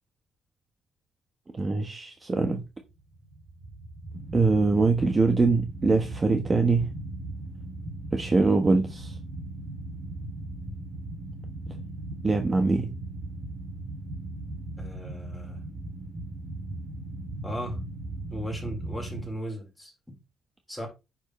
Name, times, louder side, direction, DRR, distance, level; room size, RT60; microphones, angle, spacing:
voice 1, 1.5-2.6 4.3-6.9 8.1-9.1 12.2-12.9, right 3 dB, 25° right, 1.2 m, -23 dB
sound 1, 2.9-19.3, right 2 dB, 45° right, 3.0 m, -38 dB
voice 2, 14.8-15.6 17.4-17.8 18.3-20.2 20.7-20.9, equal, 5° left, 4.4 m, -36 dB
9.9 x 7.3 x 3.2 m
cardioid pair, 135°, 0 cm